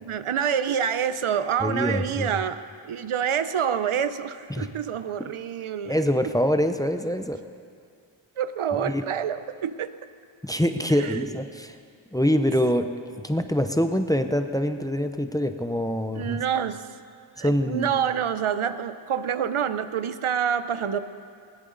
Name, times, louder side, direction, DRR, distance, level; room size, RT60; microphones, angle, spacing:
voice 1, 0.0-6.1 8.4-9.9 10.9-11.4 16.2-16.9 17.4-21.0, right 8 dB, 75° right, 12 dB, 0.8 m, -27 dB
voice 2, 1.6-2.3 4.5-4.7 5.9-7.4 8.8-9.0 10.4-11.8 12.1-12.9 13.2-16.4 17.4-17.9, equal, 5° left, 7 dB, 0.7 m, -24 dB
20.0 x 17.5 x 4.0 m, 2.3 s
wide cardioid pair, 100°, 50 cm